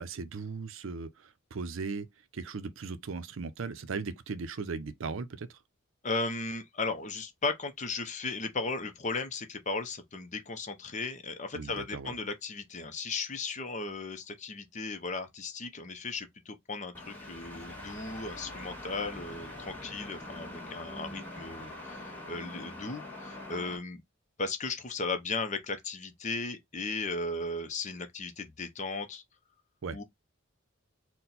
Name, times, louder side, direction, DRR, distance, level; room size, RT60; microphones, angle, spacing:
voice 1, 0.0-2.1 2.3-5.6 11.5-12.2 29.8-30.0, right 4 dB, 70° right, 0.5 m, -38 dB
voice 2, 6.0-24.0 24.4-29.2 29.9-30.0, left 3 dB, 35° left, 0.6 m, -36 dB
sound 1, 16.9-23.8, left 1 dB, 10° left, 1.5 m, -43 dB
4.3 x 2.2 x 3.9 m
head